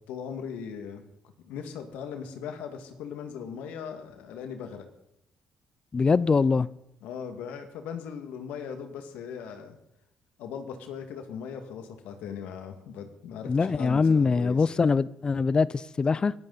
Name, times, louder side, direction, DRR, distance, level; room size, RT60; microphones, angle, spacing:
voice 1, 0.1-1.0 1.4-4.9 7.0-9.8 10.4-14.7, left 7 dB, 85° left, 2.0 m, -39 dB
voice 2, 5.9-6.7 13.5-16.3, left 4 dB, 35° left, 0.6 m, -23 dB
22.5 x 13.0 x 4.1 m
supercardioid pair, 70°, 3 cm